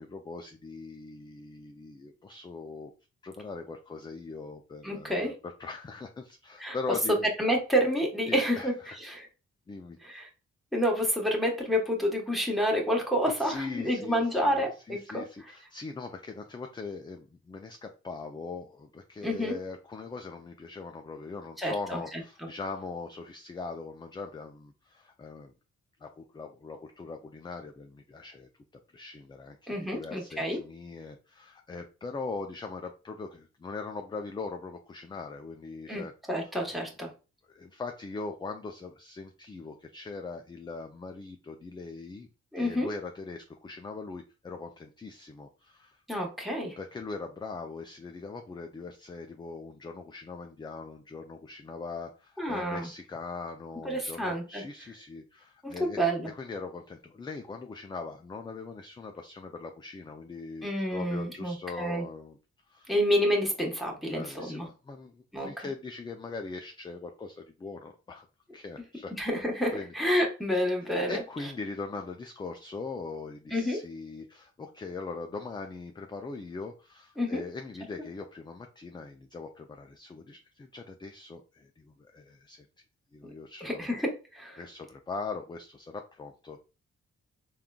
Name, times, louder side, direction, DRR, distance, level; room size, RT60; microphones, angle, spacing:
voice 1, 0.0-2.9 3.2-7.3 8.3-9.0 9.7-10.2 13.4-25.5 26.0-28.5 28.9-36.1 36.4-36.5 37.5-42.3 42.6-46.0 46.8-56.0 56.3-62.4 62.7-62.9 64.1-68.3 68.5-69.1 69.7-69.9 70.8-82.7 83.1-84.0 84.6-86.6, left 4 dB, 15° left, 5 dB, 0.3 m, -41 dB
voice 2, 4.8-5.3 6.6-6.8 7.4-9.3 10.0-10.3 10.7-15.5 19.2-19.6 21.6-22.2 29.7-30.6 35.9-37.1 42.5-42.9 46.1-46.8 52.4-52.9 53.8-54.6 55.6-56.3 60.6-62.0 62.9-64.7 65.3-65.7 69.2-71.2 73.5-73.8 77.2-77.4 83.6-84.6, equal, ahead, 0 dB, 1.1 m, -29 dB
3.6 x 2.3 x 2.2 m, 0.32 s
cardioid pair, 70°, 29 cm